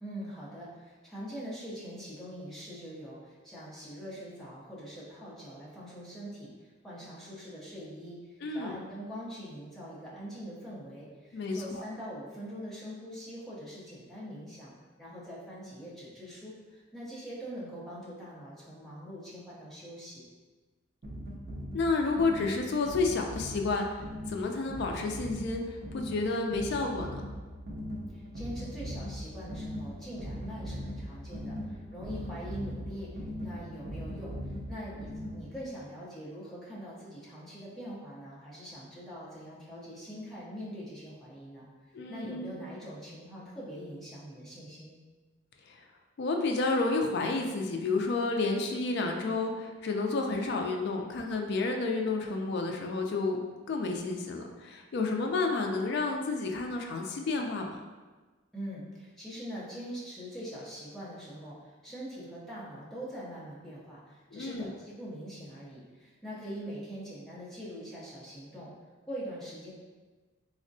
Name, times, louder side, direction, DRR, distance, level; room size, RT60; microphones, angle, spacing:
voice 1, 0.0-14.7 15.0-20.2 28.1-34.4 34.7-41.7 42.1-44.9 58.5-68.7 69.0-69.7, equal, ahead, -8 dB, 0.6 m, -43 dB
voice 2, 8.4-8.7 11.3-11.8 21.7-23.8 24.3-27.2 41.9-42.6 45.7-45.8 46.2-53.4 53.7-57.8 64.3-64.7, left 3 dB, 55° left, 2 dB, 0.3 m, -30 dB
sound 1, 21.0-35.7, equal, 50° right, 0.5 m, -40 dB
3.5 x 2.1 x 2.6 m, 1.3 s
head